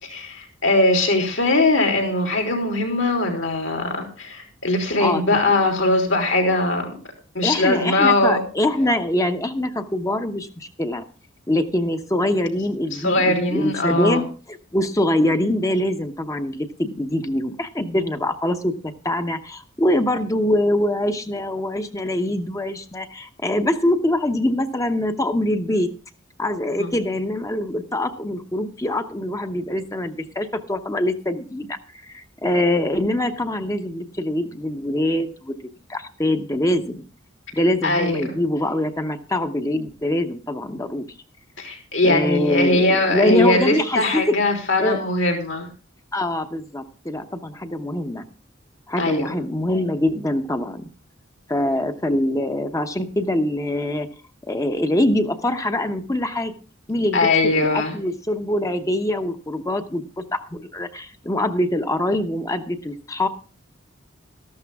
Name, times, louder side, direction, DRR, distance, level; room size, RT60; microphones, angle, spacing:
voice 1, 0.0-6.9 7.4-8.4 13.0-14.2 26.8-26.9 37.8-38.4 41.6-45.7 49.0-49.3 57.1-58.0, left 2 dB, 70° left, 3 dB, 3.4 m, -20 dB
voice 2, 7.4-11.0 11.5-18.7 19.0-25.9 26.4-35.6 35.9-37.0 37.5-41.1 42.0-44.4 44.8-45.0 46.1-48.2 48.9-50.9 51.5-54.1 54.5-56.5 56.9-63.3, left 1 dB, 15° left, 8 dB, 0.9 m, -24 dB
13.5 x 12.0 x 3.5 m, 0.35 s
head